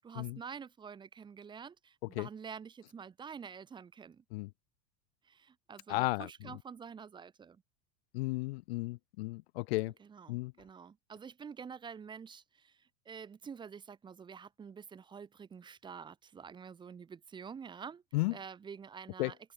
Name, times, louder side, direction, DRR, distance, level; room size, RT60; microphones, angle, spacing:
voice 1, 0.0-4.2 5.2-7.6 9.9-18.0 18.3-19.4, right 6 dB, 15° right, 2.7 m, -48 dB
voice 2, 5.9-6.3 8.1-9.9 10.3-10.5 18.1-18.3 19.2-19.3, left 21 dB, 75° left, 0.6 m, -33 dB
open air
supercardioid pair, 170°, 31 cm